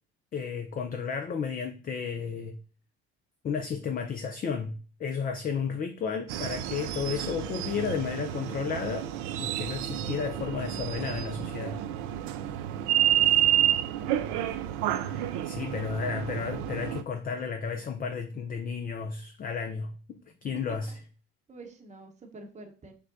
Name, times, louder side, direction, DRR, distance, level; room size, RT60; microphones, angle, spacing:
voice 1, 0.3-2.6 3.4-9.1 9.4-11.8 15.0-21.0, left 6 dB, 25° left, 0.5 m, -33 dB
sound 1, 6.3-17.0, right 12 dB, 60° right, 0.5 m, -29 dB
voice 2, 13.7-14.3 21.5-22.9, right 2 dB, 20° right, 0.9 m, -49 dB
6.4 x 2.2 x 2.5 m
hypercardioid pair, 60°, 33 cm